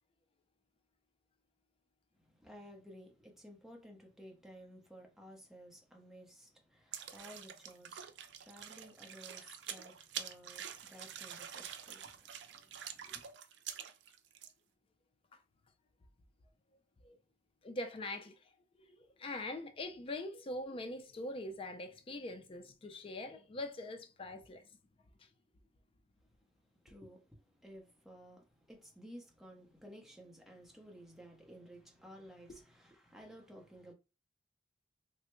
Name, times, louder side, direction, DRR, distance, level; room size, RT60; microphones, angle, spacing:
voice 1, 2.2-13.3 26.2-26.4 26.7-33.9, equal, ahead, 0.7 m, -55 dB
sound 1, 6.9-14.5, right 9 dB, 75° right, 0.4 m, -47 dB
voice 2, 17.6-18.4 18.9-24.7 32.5-32.6, left 1 dB, 30° left, 0.4 m, -43 dB
3.2 x 2.1 x 3.0 m
head